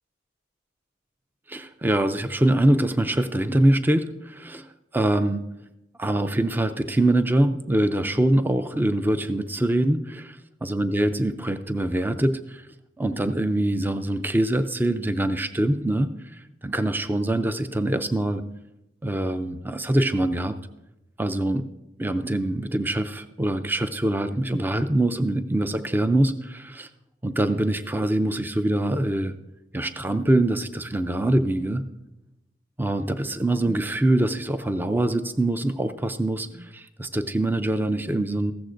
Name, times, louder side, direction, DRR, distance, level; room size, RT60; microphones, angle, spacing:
voice 1, 1.5-5.4 6.0-12.7 13.0-18.4 19.0-20.6 21.2-21.6 22.0-26.9 27.2-29.3 29.7-31.8 32.8-38.5, right 1 dB, 10° right, 10 dB, 0.4 m, -24 dB
15.0 x 13.0 x 2.5 m, 0.94 s
head